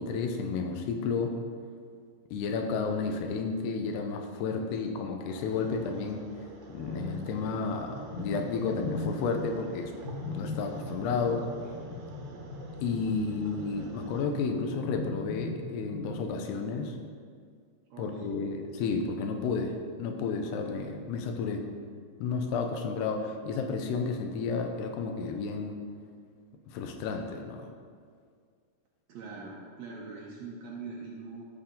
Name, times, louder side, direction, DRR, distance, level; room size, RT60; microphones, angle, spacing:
voice 1, 0.0-1.4 2.3-6.2 6.7-9.9 10.3-11.5 12.8-17.0 18.0-19.7 20.0-21.6 22.2-25.7 26.7-27.7, left 4 dB, 90° left, 4 dB, 2.9 m, -32 dB
voice 2, 4.6-5.0 17.9-18.6 29.1-31.5, right 4 dB, 90° right, -3 dB, 1.5 m, -43 dB
sound 1, 5.3-14.2, right 3 dB, 70° right, 1.9 m, -48 dB
sound 2, 6.9-7.5 7.8-9.5 10.0-16.1, left 3 dB, 70° left, 4.7 m, -39 dB
13.0 x 6.7 x 3.9 m, 2.1 s
omnidirectional pair, 4.6 m